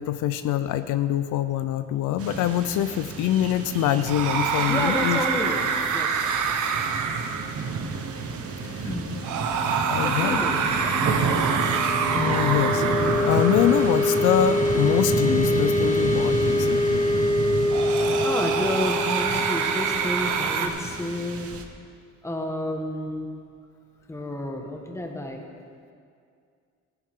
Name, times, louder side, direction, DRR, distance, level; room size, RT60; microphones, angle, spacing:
voice 1, 0.0-5.2 8.6-9.0 9.9-10.4 12.1-17.1, left 11 dB, 80° left, 11 dB, 0.5 m, -25 dB
sound 1, 2.2-21.6, right 4 dB, 50° right, 1.1 m, -31 dB
sound 2, 3.9-20.7, right 6 dB, 75° right, 0.9 m, -28 dB
voice 2, 4.7-5.6 5.9-6.6 8.8-9.2 10.0-11.4 18.2-21.5 22.2-23.3 24.1-25.4, left 1 dB, 10° left, 2 dB, 1.5 m, -31 dB
sound 3, 8.5-21.0, left 2 dB, 25° left, 1.4 m, -26 dB
15.0 x 10.5 x 3.7 m, 2.3 s
cardioid pair, 90°, 30 cm